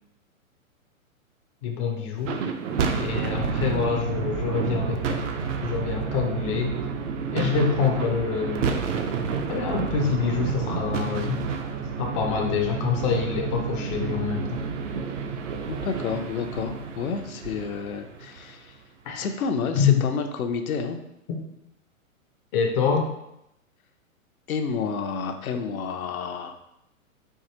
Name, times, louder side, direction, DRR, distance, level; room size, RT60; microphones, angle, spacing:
voice 1, 1.6-2.4 2.9-5.3 5.6-6.8 7.3-8.8 9.5-11.5 12.0-14.6 19.0-19.3 19.7-20.0 21.4-21.5 22.5-23.1, left 6 dB, 25° left, 1 dB, 0.4 m, -26 dB
sound 1, 2.2-18.6, right 5 dB, 60° right, 0.6 m, -29 dB
voice 2, 15.7-18.8 19.1-21.0 24.5-26.5, left 5 dB, 85° left, 6 dB, 0.6 m, -30 dB
4.7 x 2.6 x 2.8 m, 0.82 s
hypercardioid pair, 130°, 42 cm